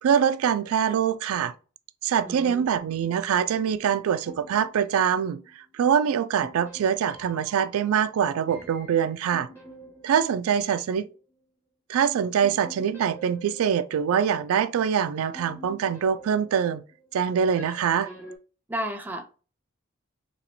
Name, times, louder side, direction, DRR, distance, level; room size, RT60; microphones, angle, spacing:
voice 1, 0.0-1.5 2.0-5.4 5.7-9.5 10.0-11.1 11.9-16.8 17.1-18.1, right 8 dB, 85° right, 0.3 m, -24 dB
voice 2, 2.3-2.6 18.7-19.4, right 1 dB, 10° right, 0.4 m, -33 dB
sound 1, 4.2-5.7 6.4-11.1 12.4-14.8 15.3-18.4, right 1 dB, 10° left, 1.1 m, -48 dB
4.2 x 2.9 x 2.8 m
head